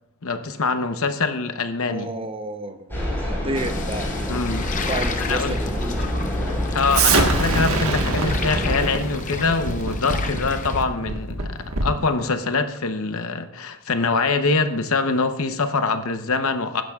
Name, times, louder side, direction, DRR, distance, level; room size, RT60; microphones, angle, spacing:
voice 1, 0.2-2.1 4.3-4.7 5.3-5.5 6.7-16.8, left 4 dB, 70° left, 9 dB, 0.8 m, -24 dB
voice 2, 1.8-4.4 4.9-6.1, right 1 dB, 25° right, 8 dB, 0.7 m, -31 dB
sound 1, 2.9-8.9, left 1 dB, 10° left, 4.1 m, -26 dB
sound 2, 3.5-10.8, left 5 dB, 35° left, 0.7 m, -34 dB
Explosion, 6.9-12.0, right 3 dB, 75° right, 1.4 m, -24 dB
18.0 x 10.5 x 2.4 m, 0.84 s
head